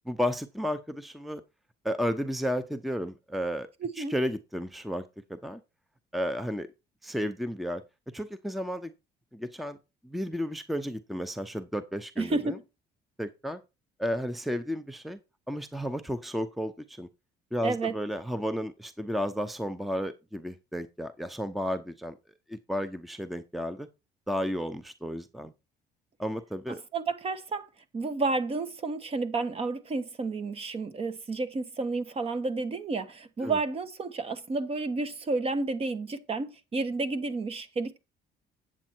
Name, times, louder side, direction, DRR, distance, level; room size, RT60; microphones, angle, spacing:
voice 1, 0.1-1.4 1.8-3.7 4.0-5.0 5.3-5.6 6.1-6.7 7.0-7.8 8.1-8.9 9.3-9.8 10.0-12.6 13.2-13.6 14.0-15.2 15.5-17.1 17.5-22.1 22.5-23.9 24.3-25.5 26.2-26.8 33.4-33.6, equal, ahead, 0.7 m, -32 dB
voice 2, 3.8-4.1 12.2-12.6 17.6-17.9 26.9-27.7 27.9-38.0, right 3 dB, 35° right, 1.1 m, -31 dB
8.9 x 7.3 x 4.5 m
cardioid pair, 110°, 17 cm